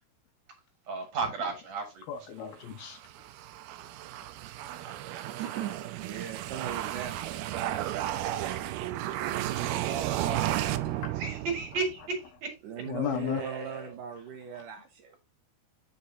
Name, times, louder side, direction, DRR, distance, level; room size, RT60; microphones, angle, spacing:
voice 1, 0.9-2.0 4.8-5.4 11.1-12.5 13.1-13.9, right 4 dB, 55° right, 2.5 m, -34 dB
voice 2, 2.1-3.0 12.9-13.4, left 10 dB, 75° left, 3.0 m, -33 dB
sound 1, 2.7-12.1, right 13 dB, 85° right, 2.6 m, -33 dB
voice 3, 5.2-10.9 12.6-15.2, right 7 dB, 70° right, 2.2 m, -41 dB
8.5 x 6.7 x 2.8 m
omnidirectional pair, 4.5 m